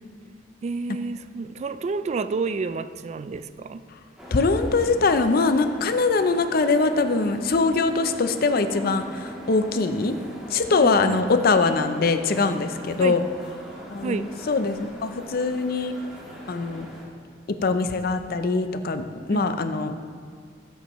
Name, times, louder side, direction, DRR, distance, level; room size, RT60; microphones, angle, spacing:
voice 1, 0.6-3.8 10.8-11.2 13.0-13.2 14.0-14.3 19.3-19.5, right 4 dB, 35° right, 13 dB, 0.3 m, -30 dB
sound 1, 4.2-17.0, right 1 dB, 5° right, 1.6 m, -40 dB
voice 2, 4.3-10.1 10.5-13.2 13.9-15.9 16.5-16.9 17.6-19.9, left 3 dB, 55° left, 9 dB, 0.5 m, -22 dB
12.0 x 8.1 x 3.1 m, 2.1 s
head